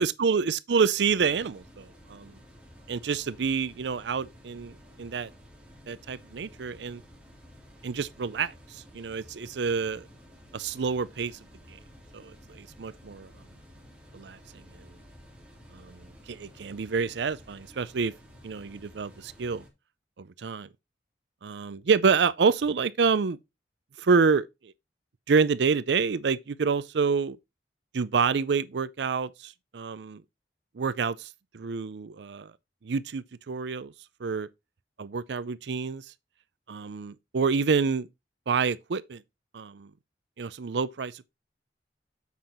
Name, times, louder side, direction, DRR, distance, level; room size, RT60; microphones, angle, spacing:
voice 1, 0.0-2.3 2.9-5.3 5.9-7.0 7.8-10.1 10.5-11.4 11.7-11.8 12.1-13.3 14.1-14.4 15.7-18.1 18.4-19.6 20.2-20.7 21.4-23.4 24.0-24.7 25.3-27.4 27.9-30.2 30.8-32.5 32.8-33.9 34.2-34.5 35.0-36.0 36.7-38.1 38.5-39.2 39.5-39.9 40.4-41.2, right 5 dB, 75° right, 0.5 m, -28 dB
sound 1, 1.1-19.7, equal, 5° right, 2.8 m, -52 dB
7.4 x 5.7 x 4.3 m
head